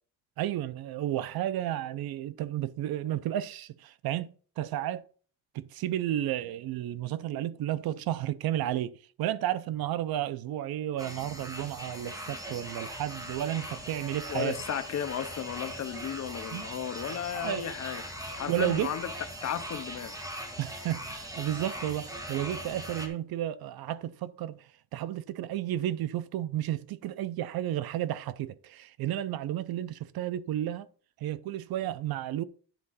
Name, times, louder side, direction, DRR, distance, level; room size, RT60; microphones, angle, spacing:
voice 1, 0.4-5.0 5.5-8.9 9.2-14.6 16.5-16.7 17.1-17.6 18.5-18.9 20.6-30.9 31.2-32.4, right 12 dB, 70° right, 0.6 m, -32 dB
sound 1, 11.0-23.1, equal, 10° right, 1.4 m, -40 dB
voice 2, 14.3-19.1 19.4-20.2, left 9 dB, 45° left, 0.8 m, -34 dB
10.0 x 3.7 x 5.6 m
cardioid pair, 135°, 38 cm